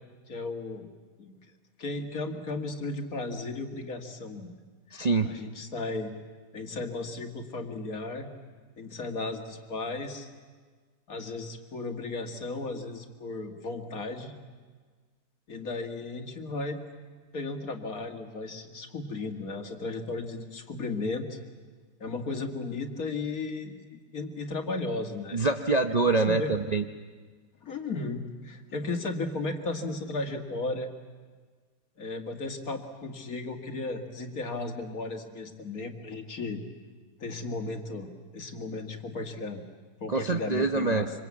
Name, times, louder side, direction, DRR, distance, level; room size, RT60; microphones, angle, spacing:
voice 1, 0.3-0.9 1.2-1.4 1.8-4.5 4.9-6.1 6.5-8.3 8.8-10.3 11.1-14.3 15.5-16.8 17.3-21.4 22.0-25.4 26.3-26.5 27.6-30.9 32.0-36.6 37.2-39.6 40.0-41.1, left 3 dB, 60° left, 4 dB, 2.3 m, -35 dB
voice 2, 4.9-5.3 25.3-26.8 40.1-41.1, right 3 dB, 35° right, 4 dB, 0.7 m, -25 dB
26.0 x 25.0 x 8.4 m, 1.5 s
omnidirectional pair, 1.7 m